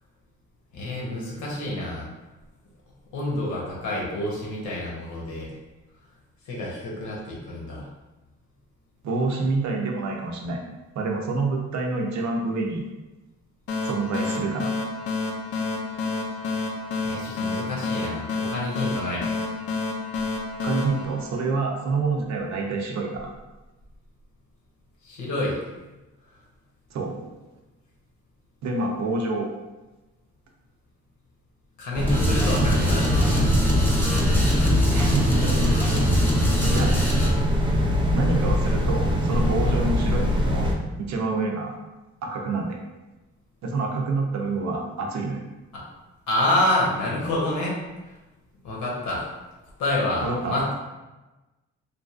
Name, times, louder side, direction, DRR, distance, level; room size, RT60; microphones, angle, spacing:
voice 1, 0.7-2.1 3.1-5.5 6.5-7.9 17.0-19.5 25.0-25.6 31.8-33.5 45.7-45.8 46.3-47.8 48.1-48.2 48.6-49.3 49.8-50.7, left 1 dB, 80° left, -4 dB, 1.0 m, -28 dB
voice 2, 9.0-10.6 11.0-12.8 13.8-14.7 20.6-23.3 26.9-27.2 28.6-29.5 34.9-35.6 36.7-36.9 38.1-40.7 41.0-41.7 42.2-42.8 43.6-45.4 50.2-50.6, right 3 dB, 65° right, 1 dB, 0.6 m, -27 dB
sound 1, 13.7-22.0, left 3 dB, 50° left, 0.5 m, -30 dB
sound 2, 31.9-40.8, left 1 dB, 15° right, 0.4 m, -22 dB
sound 3, 32.1-37.3, right 1 dB, 5° left, 0.7 m, -24 dB
3.0 x 2.4 x 2.4 m, 1.1 s
cardioid pair, 90°, 30 cm